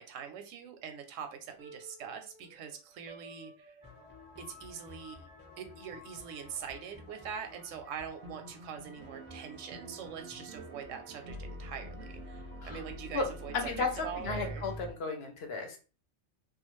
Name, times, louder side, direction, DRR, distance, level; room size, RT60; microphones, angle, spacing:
voice 1, 0.0-3.8 4.4-5.3 5.6-14.6, right 7 dB, 85° right, 6 dB, 0.9 m, -43 dB
sound 1, 1.6-4.4 7.9-14.9, right 1 dB, 55° right, 0.5 m, -46 dB
sound 2, 3.8-14.9, left 2 dB, 10° left, 0.6 m, -53 dB
voice 2, 13.5-15.8, left 4 dB, 60° left, 4 dB, 0.8 m, -34 dB
2.4 x 2.3 x 3.0 m, 0.34 s
omnidirectional pair, 1.3 m